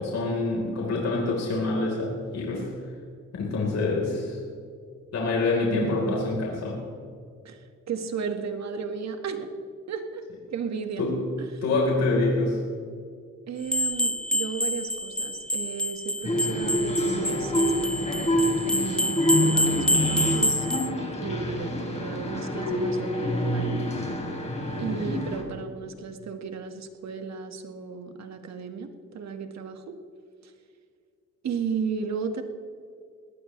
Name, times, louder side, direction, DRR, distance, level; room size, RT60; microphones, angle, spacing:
voice 1, 0.0-2.7 3.3-4.4 5.1-6.8 11.0-11.2 11.6-12.6, left 3 dB, 60° left, -2 dB, 4.2 m, -26 dB
voice 2, 5.7-6.2 7.4-9.5 9.9-11.1 11.4-11.6 13.5-20.7 21.2-23.8 24.8-29.9 30.4-30.5 31.4-32.4, right 5 dB, 60° right, 6 dB, 1.9 m, -34 dB
sound 1, 13.7-20.9, left 1 dB, 5° left, 0.7 m, -27 dB
sound 2, 16.2-25.4, equal, 20° left, 3.7 m, -27 dB
20.5 x 18.5 x 3.3 m, 2.2 s
cardioid pair, 90°, 30 cm